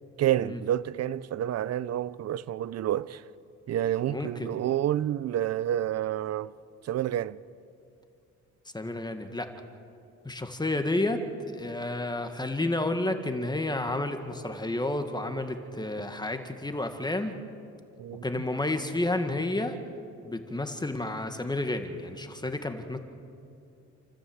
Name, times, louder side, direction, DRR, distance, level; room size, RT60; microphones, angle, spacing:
voice 1, 0.2-3.2 3.7-6.5 6.8-7.4 18.0-18.4, right 11 dB, 55° right, 0.7 m, -29 dB
voice 2, 4.1-4.5 8.7-9.5 10.2-17.3 18.2-19.8 20.2-23.0, left 2 dB, 15° left, 1.8 m, -31 dB
29.0 x 14.0 x 8.0 m
cardioid pair, 90°, 30 cm